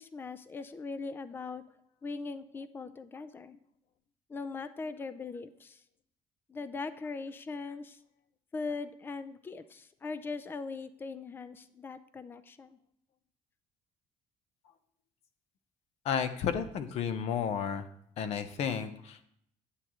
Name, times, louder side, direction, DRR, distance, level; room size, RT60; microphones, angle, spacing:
voice 1, 0.0-1.7 2.0-3.6 4.3-5.8 6.5-8.0 8.5-12.8, left 4 dB, 15° left, 13 dB, 0.4 m, -40 dB
voice 2, 16.0-17.9 18.2-19.2, left 7 dB, 55° left, 10 dB, 0.9 m, -32 dB
9.7 x 8.4 x 3.1 m, 0.70 s
cardioid pair, 155°, 12 cm